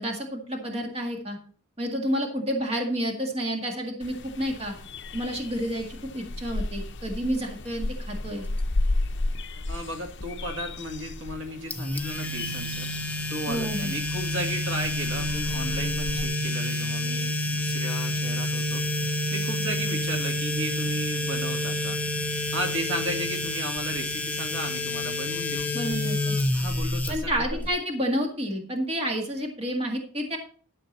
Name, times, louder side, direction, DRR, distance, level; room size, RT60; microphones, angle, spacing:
voice 1, 0.0-1.4 1.8-4.7 5.1-8.4 13.5-13.9 25.7-26.4 27.1-30.4, equal, 25° right, 1 dB, 1.9 m, -30 dB
sound 1, 4.0-16.3, left 2 dB, 55° left, 0.8 m, -34 dB
voice 2, 9.7-12.9 13.3-22.0 22.5-25.7 26.5-27.7, right 1 dB, 60° right, 2 dB, 2.0 m, -35 dB
sound 2, 11.7-27.7, left 1 dB, 5° left, 0.8 m, -29 dB
12.5 x 7.0 x 4.2 m, 0.43 s
head